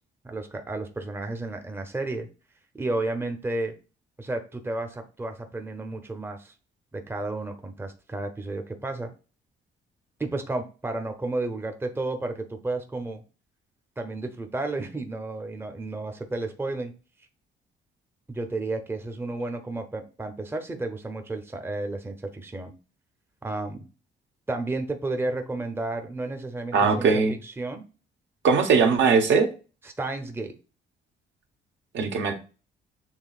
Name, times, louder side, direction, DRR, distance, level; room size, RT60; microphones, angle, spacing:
voice 1, 0.2-2.3 2.7-3.7 4.2-6.5 6.9-9.1 10.2-13.2 14.0-16.9 18.3-22.7 23.4-23.9 24.5-27.8 29.8-30.6, right 2 dB, 10° right, 5 dB, 0.7 m, -32 dB
voice 2, 26.7-27.3 28.4-29.5 31.9-32.3, right 5 dB, 65° right, 4 dB, 1.0 m, -20 dB
7.2 x 3.1 x 2.4 m, 0.35 s
cardioid pair, 90°, 20 cm